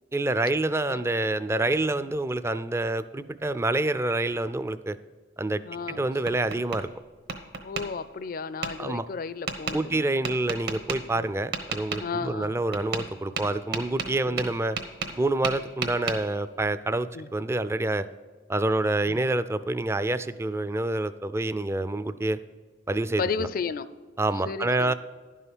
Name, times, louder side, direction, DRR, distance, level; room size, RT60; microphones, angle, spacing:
voice 1, 0.1-5.0 5.4-5.6 5.9-6.9 8.8-9.1 9.7-14.8 15.2-18.1 18.5-22.4 22.9-23.5 24.2-24.9, right 2 dB, 15° right, 13 dB, 0.4 m, -27 dB
voice 2, 5.6-6.0 7.6-10.3 11.1-11.3 12.0-12.6 14.3-14.4 17.1-17.3 19.1-19.2 23.2-23.9 24.4-24.9, left 5 dB, 50° left, 15 dB, 0.5 m, -33 dB
Tap, 5.8-6.8 7.3-7.9 8.6-8.7 9.5-9.8 10.2-11.0 11.5-12.0 12.7-13.1 13.4-15.2 15.4-16.2, right 5 dB, 65° right, 1.1 m, -32 dB
11.0 x 5.6 x 6.2 m, 1.5 s
head